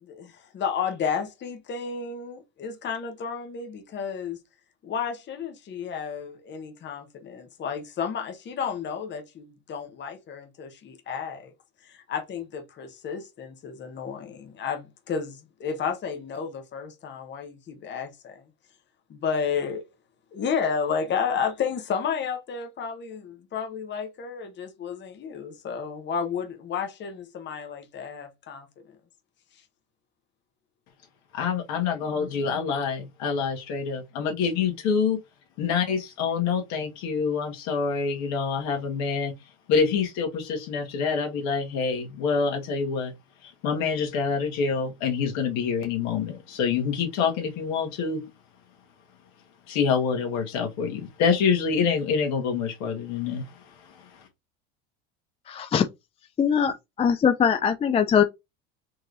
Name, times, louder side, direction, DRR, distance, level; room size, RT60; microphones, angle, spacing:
voice 1, 0.0-4.4 4.8-11.5 11.8-18.4 19.1-19.8 20.3-29.0, left 6 dB, 35° left, 1.0 m, -32 dB
voice 2, 31.3-35.2 35.6-39.3 39.7-43.1 43.4-48.2 49.7-53.4 53.9-54.0, left 6 dB, 65° left, 1.7 m, -26 dB
voice 3, 55.5-55.9 56.4-56.7 57.0-58.2, left 7 dB, 20° left, 0.4 m, -21 dB
4.5 x 3.1 x 2.6 m
supercardioid pair, 90°, 31 cm